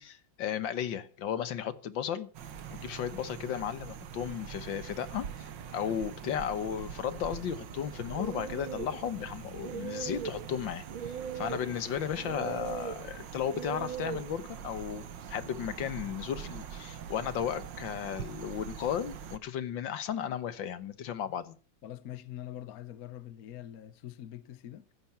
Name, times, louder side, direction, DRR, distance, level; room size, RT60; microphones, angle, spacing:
voice 1, 0.0-2.3 2.7-5.3 5.7-21.6, left 9 dB, 75° left, 1.8 m, -35 dB
sound 1, 2.3-19.4, right 8 dB, 70° right, 1.8 m, -44 dB
sound 2, 7.7-15.5, right 6 dB, 90° right, 2.4 m, -41 dB
voice 2, 21.8-24.9, left 12 dB, 60° left, 1.1 m, -44 dB
15.0 x 11.5 x 5.9 m
omnidirectional pair, 2.1 m